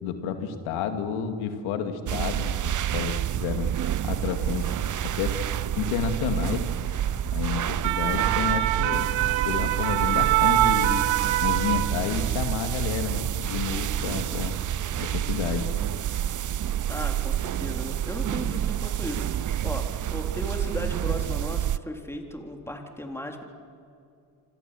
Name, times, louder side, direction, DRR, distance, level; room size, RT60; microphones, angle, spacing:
voice 1, 0.0-3.7 4.0-4.7 5.0-5.4 5.8-6.7 7.3-9.1 9.4-11.0 11.4-14.6 15.0-15.7, left 7 dB, 90° left, 7 dB, 2.4 m, -30 dB
sound 1, 2.1-21.8, right 11 dB, 40° right, 0.7 m, -28 dB
sound 2, 7.6-12.4 12.7-12.9, right 15 dB, 75° right, 1.1 m, -24 dB
voice 2, 16.9-19.8 20.1-23.4, left 1 dB, 5° left, 3 dB, 3.8 m, -36 dB
27.0 x 26.0 x 7.8 m, 2.5 s
supercardioid pair, 65°, 47 cm